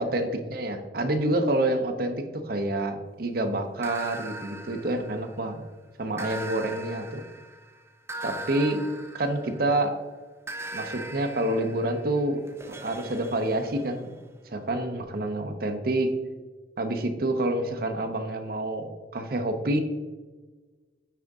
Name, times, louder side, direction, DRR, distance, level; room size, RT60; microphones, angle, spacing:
voice 1, 0.0-5.7 6.0-7.2 8.2-8.8 9.1-9.9 10.7-12.4 12.7-14.2 14.5-16.1 16.8-19.8, right 1 dB, 55° right, 6 dB, 0.7 m, -28 dB
sound 1, 3.8-5.5 6.2-9.9 10.5-14.2, right 1 dB, 15° right, 0.4 m, -40 dB
9.2 x 3.7 x 3.6 m, 1.3 s
head